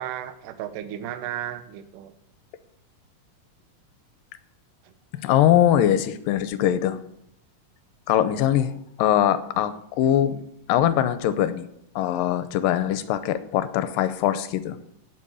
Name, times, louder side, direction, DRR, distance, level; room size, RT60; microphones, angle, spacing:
voice 1, 0.0-2.1 4.8-4.9, right 11 dB, 75° right, 10 dB, 2.3 m, -34 dB
voice 2, 5.1-7.0 8.1-8.7 9.0-11.7 12.0-14.8, left 11 dB, 80° left, 12 dB, 2.4 m, -22 dB
9.1 x 8.2 x 8.4 m, 0.76 s
omnidirectional pair, 4.0 m